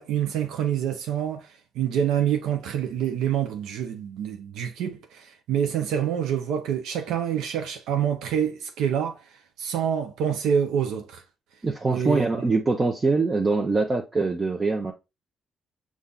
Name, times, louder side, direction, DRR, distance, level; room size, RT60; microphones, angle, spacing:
voice 1, 0.0-9.3 9.6-11.2 11.9-12.4, right 9 dB, 90° right, 0.5 m, -27 dB
voice 2, 11.6-14.9, right 3 dB, 30° right, 0.6 m, -23 dB
5.4 x 2.4 x 3.6 m
cardioid pair, 90°, 0 cm